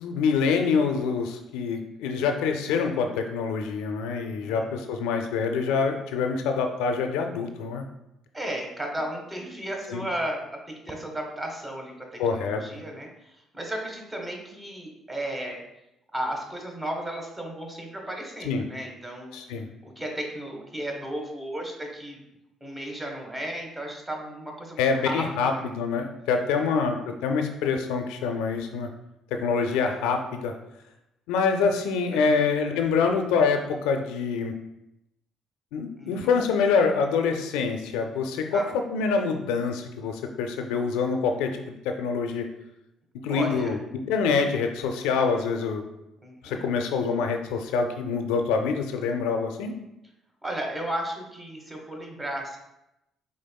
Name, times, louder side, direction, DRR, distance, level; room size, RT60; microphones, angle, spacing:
voice 1, 0.0-7.8 9.9-10.0 12.2-12.8 18.4-18.6 19.3-19.7 24.8-28.9 29.3-30.5 31.3-34.5 35.7-38.6 38.9-42.5 43.2-43.8 44.1-45.8 46.4-49.7, left 5 dB, 80° left, 5 dB, 0.4 m, -26 dB
voice 2, 8.3-13.1 13.5-15.6 16.1-19.4 19.8-22.2 22.6-25.6 26.6-27.0 32.1-32.5 36.0-36.4 38.5-38.8 43.3-43.8 46.2-46.7 50.4-52.6, right 1 dB, 20° right, 1 dB, 1.3 m, -34 dB
5.1 x 3.5 x 2.2 m, 0.87 s
supercardioid pair, 60°, 0 cm